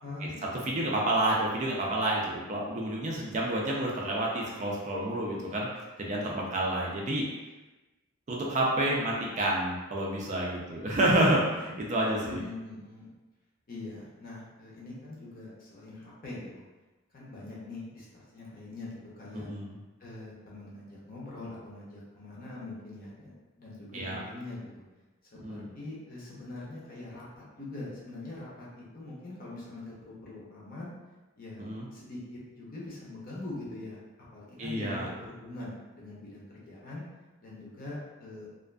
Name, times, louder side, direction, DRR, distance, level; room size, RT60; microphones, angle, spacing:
voice 1, 0.0-0.9 12.2-13.1 13.7-16.6 17.1-18.9 19.2-19.5 20.0-24.8 25.5-30.9 31.4-31.7 31.9-34.0 34.3-37.0 37.4-38.5, left 2 dB, 45° left, -6 dB, 0.7 m, -43 dB
voice 2, 0.6-5.7 6.0-7.2 8.3-12.4 19.3-19.7 23.9-24.2 25.4-25.7 31.6-31.9 34.6-35.1, right 1 dB, 35° right, -3 dB, 0.4 m, -29 dB
2.5 x 2.4 x 2.2 m, 1.2 s
head